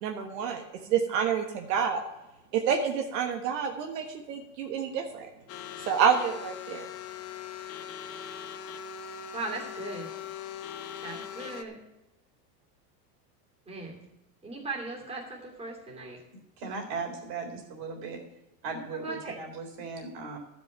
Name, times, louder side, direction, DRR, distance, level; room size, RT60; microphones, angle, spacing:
voice 1, 0.0-2.0 2.5-5.3 5.9-6.9, right 7 dB, 75° right, 3 dB, 1.6 m, -28 dB
sound 1, 5.5-11.6, left 8 dB, 30° left, 0.8 m, -41 dB
voice 2, 9.3-10.1 11.0-11.7 13.7-14.0 14.4-16.2 19.0-19.4, right 3 dB, 10° right, -3 dB, 2.8 m, -38 dB
voice 3, 16.3-18.2 18.6-20.4, right 4 dB, 50° right, 2 dB, 3.7 m, -37 dB
12.0 x 5.4 x 9.0 m, 0.96 s
supercardioid pair, 150°, 49 cm